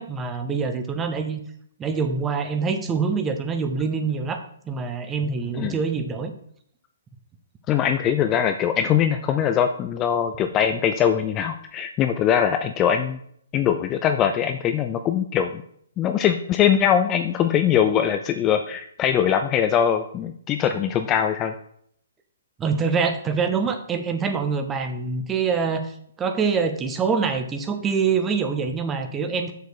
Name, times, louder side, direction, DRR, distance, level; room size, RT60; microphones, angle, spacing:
voice 1, 0.0-1.4 1.8-6.3 22.6-29.5, right 5 dB, 10° right, 7 dB, 0.7 m, -25 dB
voice 2, 7.7-13.2 13.5-15.6 16.0-21.5, left 9 dB, 15° left, 7 dB, 0.4 m, -22 dB
6.8 x 6.4 x 4.8 m, 0.65 s
hypercardioid pair, 165°, 0 cm